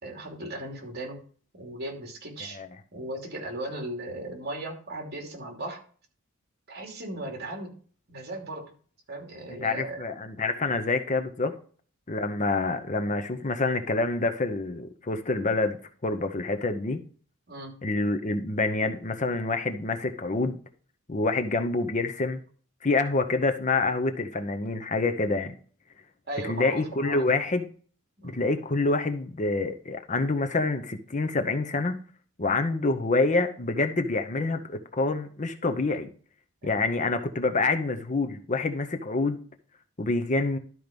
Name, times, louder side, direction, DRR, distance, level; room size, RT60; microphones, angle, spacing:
voice 1, 0.0-1.2 1.5-2.6 2.9-5.8 6.7-7.7 8.1-8.7 9.1-10.0 17.5-17.7 26.3-27.3 28.2-28.4 36.6-36.8, right 1 dB, 50° right, 2.8 m, -37 dB
voice 2, 9.6-11.6 12.1-17.0 17.8-20.6 21.1-22.4 22.8-25.6 26.4-27.7 28.2-32.0 32.4-36.1 36.6-39.4 40.0-40.6, left 3 dB, 35° left, 0.8 m, -27 dB
12.0 x 4.7 x 5.2 m
head